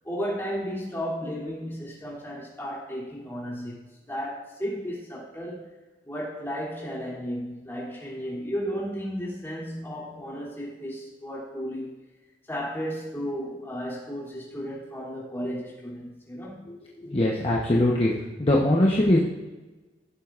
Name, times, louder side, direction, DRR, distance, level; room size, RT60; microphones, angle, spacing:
voice 1, 0.0-3.8 4.1-5.7 6.0-12.0 12.5-16.7, equal, 15° left, -6 dB, 3.1 m, -34 dB
voice 2, 17.0-18.1 18.4-19.2, left 1 dB, 35° left, -3 dB, 1.0 m, -21 dB
16.0 x 7.6 x 2.5 m, 1.2 s
head